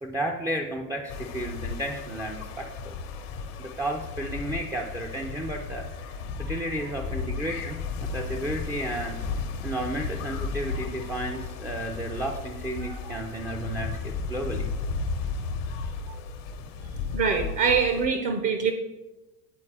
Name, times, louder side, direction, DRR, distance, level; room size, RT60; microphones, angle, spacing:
voice 1, 0.0-3.0 3.6-14.7, right 1 dB, 10° right, 1 dB, 0.4 m, -33 dB
sound 1, 1.1-18.1, left 4 dB, 65° left, 0.8 m, -34 dB
voice 2, 17.1-18.7, right 6 dB, 45° right, 6 dB, 0.8 m, -24 dB
8.6 x 4.1 x 3.3 m, 1.1 s
hypercardioid pair, 85°, 42 cm